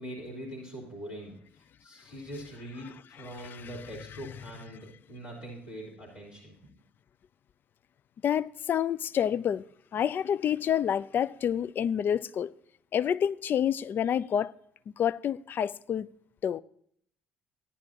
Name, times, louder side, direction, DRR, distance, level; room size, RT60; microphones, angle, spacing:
voice 1, 0.0-1.3 1.8-6.5, right 1 dB, 70° left, 3.5 m, -42 dB
voice 2, 8.2-9.6 9.9-12.5 12.9-14.5 15.0-16.1 16.4-16.6, left 9 dB, 40° left, 0.4 m, -28 dB
15.0 x 10.5 x 2.8 m
figure-of-eight pair, 50°, 5 cm